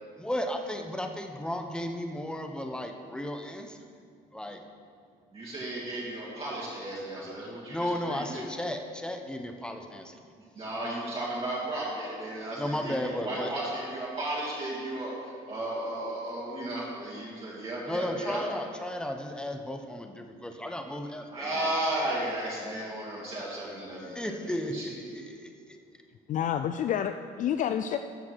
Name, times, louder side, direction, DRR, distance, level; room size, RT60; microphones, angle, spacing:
voice 1, 0.2-3.9 4.3-4.6 7.7-10.3 12.6-13.5 17.9-21.8 23.9-25.8, left 1 dB, 5° left, 4 dB, 0.9 m, -34 dB
voice 2, 5.3-8.5 10.5-18.4 21.3-24.3 24.7-25.2, right 1 dB, 35° right, -7 dB, 2.6 m, -34 dB
voice 3, 26.3-28.0, left 9 dB, 50° left, 9 dB, 0.4 m, -29 dB
13.5 x 5.1 x 6.3 m, 2.2 s
cardioid pair, 110°, 17 cm